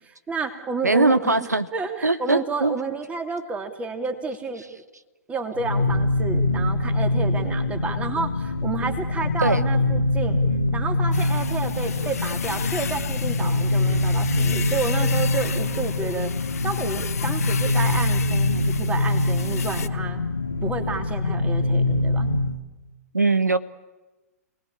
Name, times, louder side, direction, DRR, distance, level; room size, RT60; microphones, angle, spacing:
voice 1, 0.3-4.6 5.3-10.4 10.7-16.3 16.6-20.3 20.6-22.3, right 4 dB, 15° right, 6 dB, 2.8 m, -30 dB
voice 2, 0.8-1.7 2.0-2.8 9.4-9.6 23.1-23.6, right 3 dB, 85° right, 13 dB, 1.1 m, -20 dB
sound 1, 5.6-22.6, left 2 dB, 90° left, 1.9 m, -24 dB
sound 2, 11.1-19.9, left 7 dB, 65° left, 1.0 m, -35 dB
29.0 x 19.5 x 8.7 m, 1.1 s
figure-of-eight pair, 110°, 9 cm